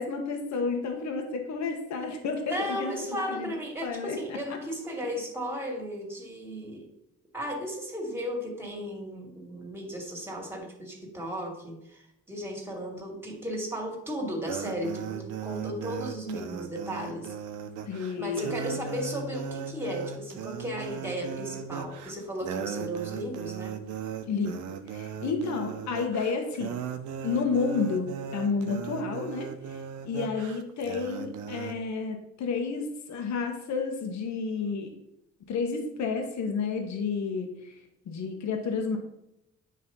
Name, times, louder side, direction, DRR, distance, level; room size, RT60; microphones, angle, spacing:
voice 1, 0.0-3.5 3.8-4.4 17.9-18.6 24.3-24.6 24.9-26.8 27.2-34.9 35.5-37.8 38.1-39.0, left 4 dB, 65° left, 3 dB, 1.3 m, -31 dB
voice 2, 2.5-6.8 7.3-17.3 18.1-23.8, equal, 5° right, 1 dB, 2.3 m, -35 dB
sound 1, 14.5-31.7, right 7 dB, 85° right, 0.7 m, -37 dB
9.4 x 3.2 x 5.5 m, 0.83 s
cardioid pair, 90°, 30 cm